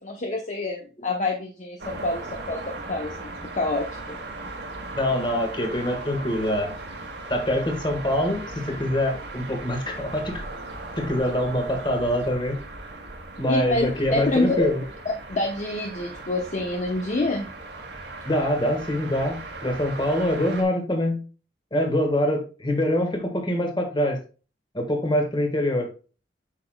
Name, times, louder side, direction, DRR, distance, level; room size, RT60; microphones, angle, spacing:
voice 1, 0.0-3.3 3.6-4.2 13.5-14.7 15.0-17.5, left 2 dB, 45° left, 2 dB, 0.8 m, -27 dB
sound 1, 1.8-20.6, right 2 dB, 80° right, 2.0 m, -38 dB
voice 2, 4.9-6.7 7.3-10.4 11.0-12.6 13.4-14.8 18.2-21.2 21.7-24.2 24.7-25.9, left 1 dB, 25° left, 4 dB, 1.7 m, -24 dB
8.3 x 5.9 x 2.3 m, 0.35 s
head